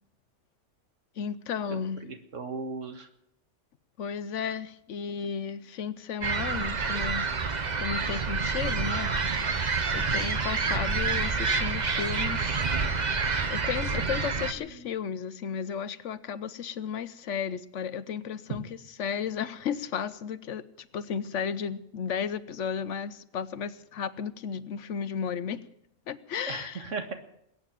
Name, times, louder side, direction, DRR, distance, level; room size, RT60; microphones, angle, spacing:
voice 1, 1.2-2.0 4.0-7.3 7.8-9.1 9.9-12.6 13.5-18.7 19.0-25.6 26.1-26.8, left 7 dB, 75° left, 15 dB, 1.1 m, -34 dB
voice 2, 1.7-3.1 13.9-14.1 14.6-14.7 26.5-27.1, right 4 dB, 80° right, 6 dB, 2.0 m, -37 dB
sound 1, 6.2-14.5, right 4 dB, 40° right, 1.0 m, -28 dB
21.0 x 9.0 x 7.5 m, 0.76 s
omnidirectional pair, 1.3 m